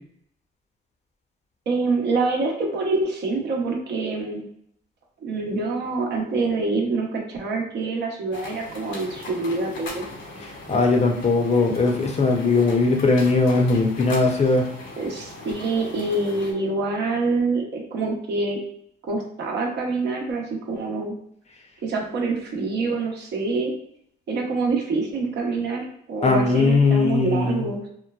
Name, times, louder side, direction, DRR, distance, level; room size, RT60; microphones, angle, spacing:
voice 1, 1.7-4.4 5.2-10.0 15.0-18.6 19.0-21.2 21.8-23.7 24.3-27.9, right 3 dB, 60° right, 0 dB, 0.8 m, -26 dB
sound 1, 8.3-16.5, left 2 dB, 75° left, 0.8 m, -39 dB
voice 2, 10.4-14.7 26.2-27.6, left 3 dB, 35° left, 2 dB, 0.6 m, -19 dB
3.0 x 2.1 x 2.3 m, 0.68 s
supercardioid pair, 70°, 20 cm